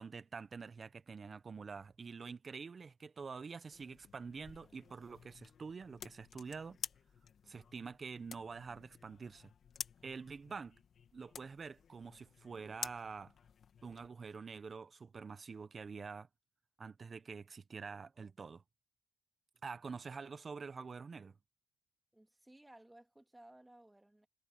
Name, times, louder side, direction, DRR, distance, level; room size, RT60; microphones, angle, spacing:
voice 1, 0.0-6.8 7.5-9.5 10.0-10.8 11.1-13.3 13.8-16.3 16.8-18.6 19.6-21.4, right 5 dB, 35° right, 1.0 m, -47 dB
sound 1, 3.7-14.1, left 7 dB, 55° left, 2.8 m, -51 dB
voice 2, 22.1-24.3, right 1 dB, 10° right, 2.7 m, -59 dB
cardioid pair, 90°, 0 cm